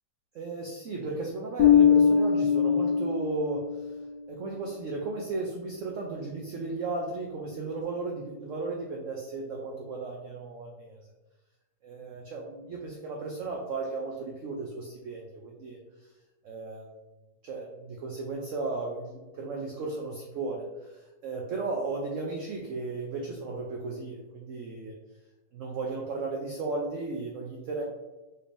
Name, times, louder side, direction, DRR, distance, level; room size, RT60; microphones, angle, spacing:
voice 1, 0.3-4.0 4.3-11.1 11.8-16.1 16.4-16.9 17.4-24.9 25.5-27.8, right 3 dB, 70° right, -1 dB, 0.7 m, -35 dB
Bass guitar, 1.6-4.0, left 7 dB, 90° left, 1.2 m, -22 dB
4.2 x 3.4 x 2.5 m, 1.1 s
omnidirectional pair, 1.9 m